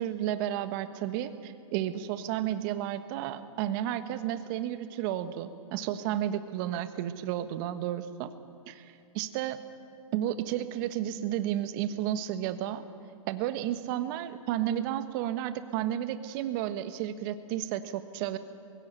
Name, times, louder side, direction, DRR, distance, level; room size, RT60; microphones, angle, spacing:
voice 1, 0.0-8.3 8.7-9.6 10.1-12.8 13.3-18.4, right 12 dB, 40° right, 11 dB, 1.3 m, -32 dB
22.0 x 16.5 x 9.0 m, 2.7 s
hypercardioid pair, 135°, 18 cm